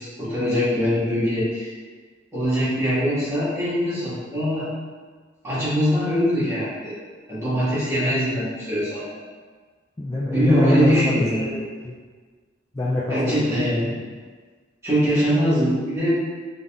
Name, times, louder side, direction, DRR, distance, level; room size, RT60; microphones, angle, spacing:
voice 1, 0.0-1.7 2.3-4.7 5.4-7.0 7.3-9.2 10.3-11.5 13.1-13.9 14.8-16.1, equal, 15° right, -12 dB, 1.5 m, -22 dB
voice 2, 10.0-11.1 11.4-11.9 12.7-13.4, left 2 dB, 15° left, -7 dB, 0.4 m, -25 dB
3.8 x 2.5 x 3.4 m, 1.5 s
head